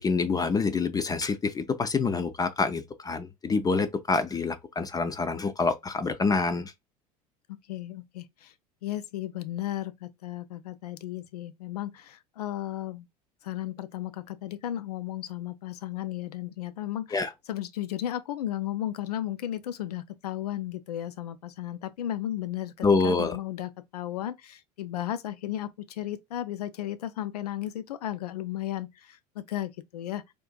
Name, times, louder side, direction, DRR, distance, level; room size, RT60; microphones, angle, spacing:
voice 1, 0.0-6.7 17.1-17.3 22.8-23.4, left 4 dB, 20° left, 0.4 m, -26 dB
voice 2, 7.5-8.5 8.8-13.1 13.4-17.2 17.5-30.3, left 12 dB, 80° left, 0.4 m, -34 dB
3.6 x 2.5 x 2.2 m
hypercardioid pair, 75°, 20 cm